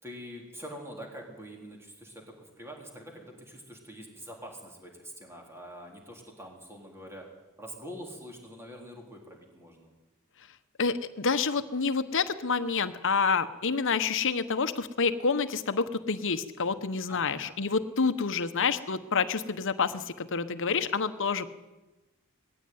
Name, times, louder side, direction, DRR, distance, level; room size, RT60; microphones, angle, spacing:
voice 1, 0.0-7.3 7.6-9.9 17.1-17.6, equal, 10° right, 0 dB, 3.8 m, -45 dB
voice 2, 10.8-21.5, left 5 dB, 60° left, 11 dB, 1.1 m, -28 dB
20.0 x 15.5 x 9.5 m, 1.1 s
head